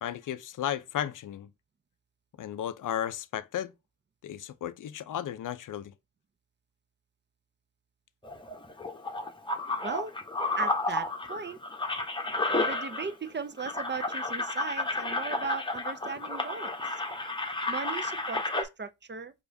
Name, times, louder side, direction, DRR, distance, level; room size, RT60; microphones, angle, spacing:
voice 1, 0.0-1.5 2.4-3.7 4.2-5.9, left 10 dB, 50° left, 0.5 m, -34 dB
sound 1, 8.2-13.3 13.6-18.6, left 2 dB, 10° left, 0.9 m, -32 dB
voice 2, 10.6-11.6 12.6-17.0 17.7-19.3, right 5 dB, 25° right, 0.5 m, -37 dB
4.7 x 2.5 x 2.6 m
supercardioid pair, 40°, 41 cm